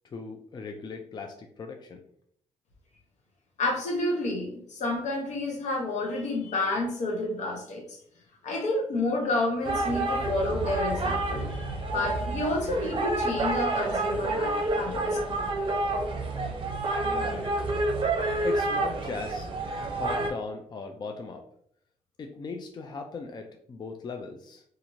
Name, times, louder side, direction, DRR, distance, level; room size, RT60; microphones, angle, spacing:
voice 1, 0.0-2.0 17.1-17.7 18.4-19.5 19.9-21.4 22.2-24.6, left 4 dB, 35° left, 4 dB, 0.4 m, -38 dB
voice 2, 3.6-8.0 8.4-15.0, left 2 dB, 70° left, 1 dB, 0.8 m, -30 dB
sound 1, 9.6-20.3, right 2 dB, 45° right, 0.7 m, -29 dB
2.8 x 2.5 x 2.7 m, 0.66 s
supercardioid pair, 60°, 13 cm